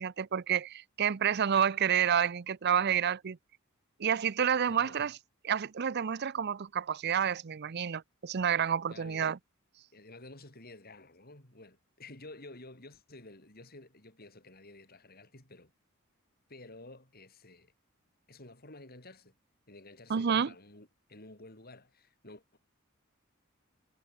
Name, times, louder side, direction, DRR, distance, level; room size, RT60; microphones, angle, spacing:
voice 1, 0.0-3.4 4.0-5.1 5.4-9.4 20.1-20.5, right 8 dB, 50° right, 0.5 m, -29 dB
voice 2, 4.7-5.0 8.9-9.3 9.9-15.7 16.5-17.7 18.3-19.3 19.7-22.6, left 2 dB, 45° left, 6.4 m, -52 dB
head